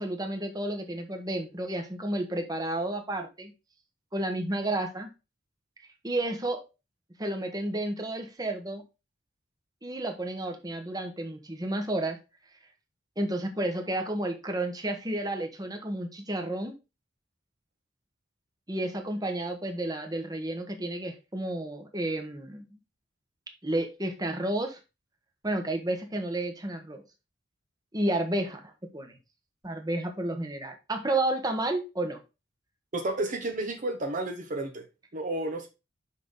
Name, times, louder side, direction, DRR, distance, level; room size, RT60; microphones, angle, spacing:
voice 1, 0.0-3.5 4.1-5.1 6.0-6.6 7.2-8.8 9.8-12.2 13.2-16.7 18.7-22.6 23.6-24.8 25.4-27.0 27.9-28.6 28.9-29.2 29.6-32.2, right 1 dB, 20° right, 1.2 m, -31 dB
voice 2, 32.9-34.8 35.1-35.7, right 2 dB, 40° right, 0.9 m, -31 dB
5.9 x 5.9 x 3.8 m
head